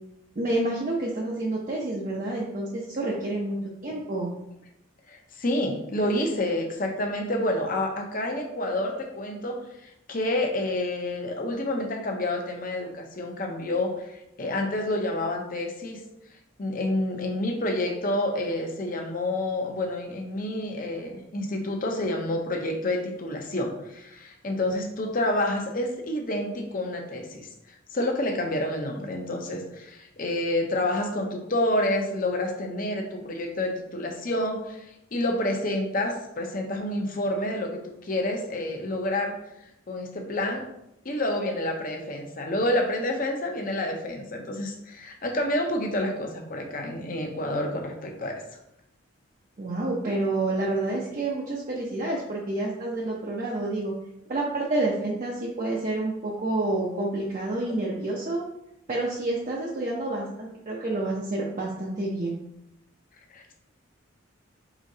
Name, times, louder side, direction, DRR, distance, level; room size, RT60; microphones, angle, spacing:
voice 1, 0.4-3.6 3.8-4.3 49.6-53.9 54.3-58.5 58.9-62.3, right 2 dB, 40° right, -4 dB, 0.6 m, -28 dB
voice 2, 5.1-16.0 16.6-27.5 27.9-34.9 35.1-39.4 39.9-40.7 41.0-48.4 63.3-63.5, left 1 dB, 40° left, 3 dB, 0.7 m, -28 dB
5.0 x 3.7 x 2.7 m, 0.84 s
head